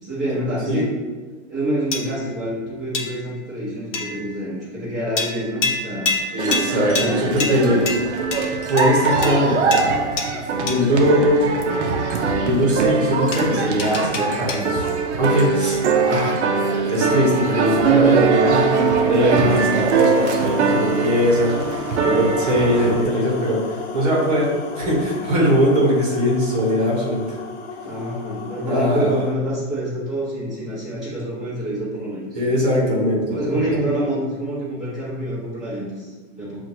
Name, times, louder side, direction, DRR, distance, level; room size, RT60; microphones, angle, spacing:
voice 1, 0.0-0.9 1.5-6.1 6.7-7.8 27.8-32.3 33.3-36.6, right 1 dB, ahead, -16 dB, 1.0 m, -27 dB
sound 1, 1.9-2.4 2.9-3.4 3.9-4.4 5.2-11.0 13.3-14.9, left 3 dB, 90° left, 0.9 m, -28 dB
voice 2, 6.3-7.8 8.7-9.9 10.6-11.6 12.4-14.9 15.2-15.8 16.1-16.4 16.9-27.4 28.7-29.2 32.3-33.6, equal, 35° right, -4 dB, 1.1 m, -21 dB
sound 2, 6.4-23.0, right 5 dB, 70° right, 0.6 m, -21 dB
sound 3, 19.5-29.3, left 4 dB, 55° left, 0.6 m, -34 dB
5.8 x 2.5 x 2.8 m, 1.4 s
hypercardioid pair, 180°, 36 cm